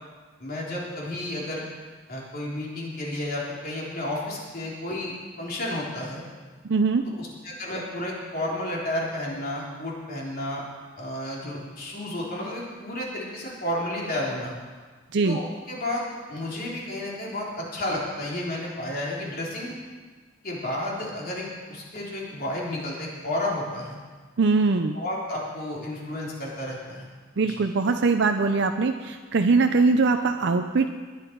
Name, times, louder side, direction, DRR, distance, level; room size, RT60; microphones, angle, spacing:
voice 1, 0.4-1.7 2.1-6.2 7.2-10.6 11.0-14.5 15.2-19.8 20.4-24.0 24.9-27.1 27.5-27.6, left 1 dB, 50° left, -4 dB, 3.8 m, -32 dB
voice 2, 6.6-7.0 15.1-15.4 24.4-25.0 27.4-30.9, right 4 dB, 65° right, 6 dB, 0.6 m, -22 dB
19.5 x 9.8 x 4.6 m, 1.4 s
head